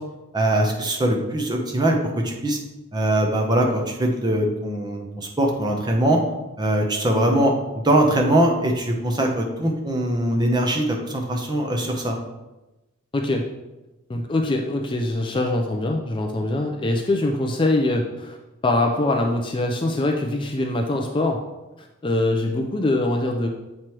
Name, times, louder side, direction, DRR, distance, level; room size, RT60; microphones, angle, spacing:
voice 1, 0.3-2.6 2.9-6.2 6.6-7.5 7.8-12.2, right 1 dB, 20° right, 1 dB, 0.8 m, -21 dB
voice 2, 13.1-13.4 14.1-18.4 18.6-21.4 21.8-23.5, left 2 dB, 25° left, 2 dB, 0.4 m, -23 dB
7.4 x 3.1 x 4.5 m, 1.0 s
head